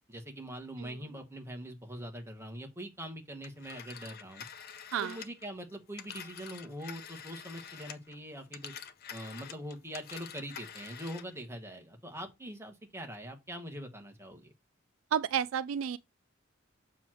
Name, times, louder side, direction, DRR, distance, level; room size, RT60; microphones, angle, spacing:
voice 1, 0.1-4.5 5.0-8.7 9.1-14.5, equal, 10° right, 1.3 m, -43 dB
Telephone, 3.4-8.2 8.5-11.4, left 8 dB, 50° left, 0.6 m, -47 dB
voice 2, 15.1-16.0, right 8 dB, 65° right, 0.3 m, -31 dB
6.9 x 3.2 x 6.0 m
head